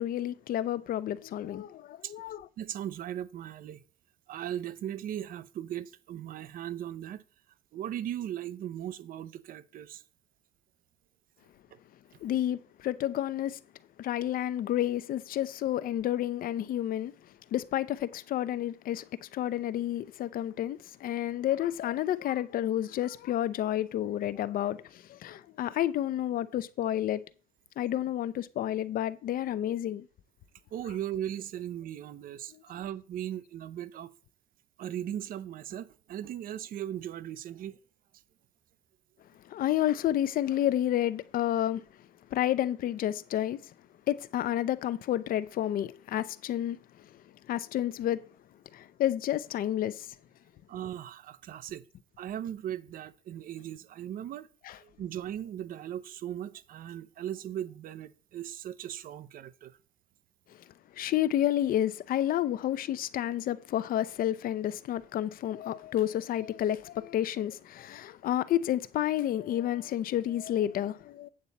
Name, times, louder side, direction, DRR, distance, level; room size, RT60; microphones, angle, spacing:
voice 1, 0.0-2.5 12.2-13.6 14.0-17.1 17.5-27.2 27.8-30.1 39.5-41.8 42.3-43.7 44.1-46.8 47.5-48.2 48.7-50.1 54.7-54.8 61.0-71.3, left 12 dB, 60° left, 0.6 m, -30 dB
voice 2, 2.6-3.8 4.3-7.2 7.7-10.0 30.7-34.1 34.8-37.8 50.7-51.8 52.2-54.5 54.8-59.7, right 11 dB, 55° right, 0.6 m, -38 dB
8.7 x 6.9 x 4.0 m
cardioid pair, 110°, 17 cm